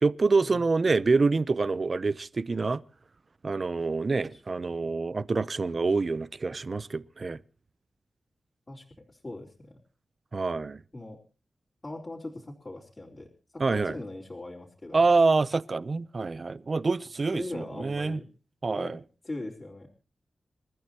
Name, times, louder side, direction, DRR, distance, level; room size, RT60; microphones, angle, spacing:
voice 1, 0.0-2.8 3.4-7.4 10.3-10.8 13.6-14.0 14.9-18.2 18.6-19.0, right 3 dB, 45° right, 0.7 m, -26 dB
voice 2, 8.7-9.8 10.9-11.2 11.8-15.0 17.3-18.3 18.8-18.9 19.2-19.9, left 2 dB, 25° left, 4.0 m, -40 dB
28.0 x 14.0 x 2.9 m
wide cardioid pair, 105°, 0 cm